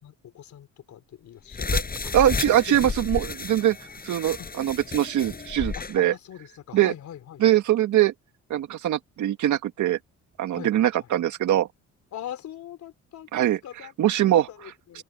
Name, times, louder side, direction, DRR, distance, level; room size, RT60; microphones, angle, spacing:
voice 1, 0.0-2.2 2.6-3.2 4.4-4.5 5.7-7.4 10.5-11.1 12.1-13.9 14.2-15.0, left 11 dB, 70° left, 3.8 m, -42 dB
sound 1, 1.5-6.0, left 4 dB, 30° left, 6.5 m, -32 dB
voice 2, 2.1-3.8 4.0-6.1 6.7-6.9 7.4-8.1 8.5-10.0 10.4-11.7 13.3-13.6 14.0-14.5 14.9-15.0, right 12 dB, 75° right, 2.1 m, -22 dB
cardioid pair, 90°, 30 cm